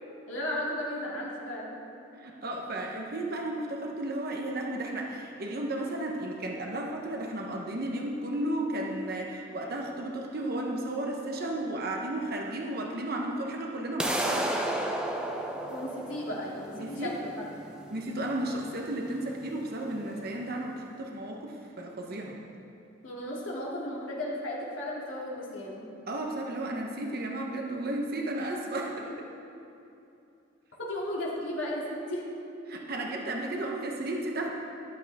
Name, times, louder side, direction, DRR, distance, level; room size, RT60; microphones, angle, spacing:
voice 1, 0.3-1.8 15.7-17.5 23.0-25.9 29.1-29.2 30.8-32.3, left 1 dB, 70° left, -5 dB, 2.6 m, -35 dB
voice 2, 2.2-14.5 16.8-17.1 17.9-22.4 26.1-29.1 32.7-34.5, right 1 dB, 50° right, 0 dB, 1.0 m, -33 dB
sound 1, 14.0-20.0, right 1 dB, 5° right, 0.7 m, -33 dB
13.5 x 12.0 x 3.5 m, 2.7 s
head